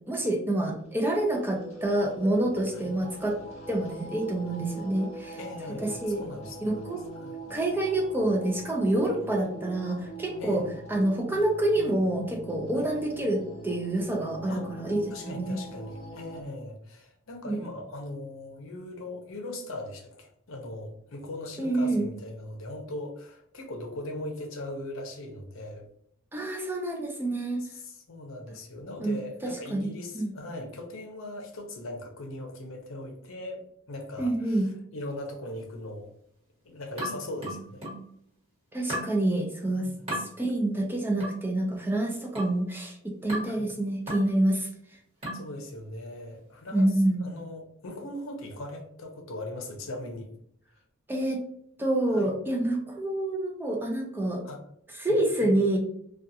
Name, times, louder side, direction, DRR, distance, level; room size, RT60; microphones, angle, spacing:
voice 1, 0.1-3.4 3.7-5.4 5.8-6.2 6.6-7.0 7.5-10.6 10.9-15.6 17.5-17.6 21.6-22.1 26.3-27.6 29.0-29.2 29.4-30.3 34.2-34.7 38.7-39.9 40.2-44.7 46.7-47.2 51.1-51.4 51.8-54.4 55.0-55.8, right 1 dB, 10° right, 0 dB, 0.4 m, -27 dB
sound 1, 0.7-16.4, right 1 dB, 30° left, 0.8 m, -43 dB
voice 2, 5.4-6.8 7.1-7.4 9.2-9.4 10.4-10.7 12.7-12.9 14.5-14.7 15.1-25.9 27.6-36.1 36.6-37.9 39.7-40.2 43.4-43.7 45.3-50.3 52.1-52.3 54.4-54.6 55.0-55.6, left 1 dB, 65° left, 3 dB, 0.6 m, -40 dB
sound 2, 37.0-38.1 38.9-39.2 40.1-40.3 41.2-41.5 42.3-42.6 43.3-43.6 44.1-44.3 45.2-45.5, equal, 30° right, 1.5 m, -35 dB
2.4 x 2.3 x 2.7 m, 0.68 s
head